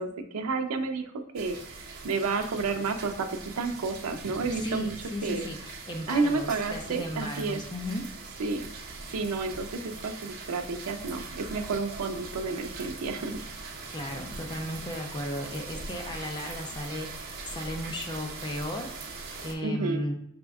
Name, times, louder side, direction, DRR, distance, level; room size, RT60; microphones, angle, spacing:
voice 1, 0.0-4.9 5.2-5.4 6.1-7.6 8.4-8.7 9.1-13.4 19.6-20.1, right 4 dB, 85° right, 6 dB, 0.5 m, -31 dB
sound 1, 1.3-19.5, right 3 dB, 45° right, 0.8 m, -41 dB
voice 2, 4.6-8.0 13.9-18.9 19.4-20.1, left 1 dB, 20° left, 2 dB, 0.5 m, -35 dB
5.1 x 3.4 x 2.3 m, 0.74 s
head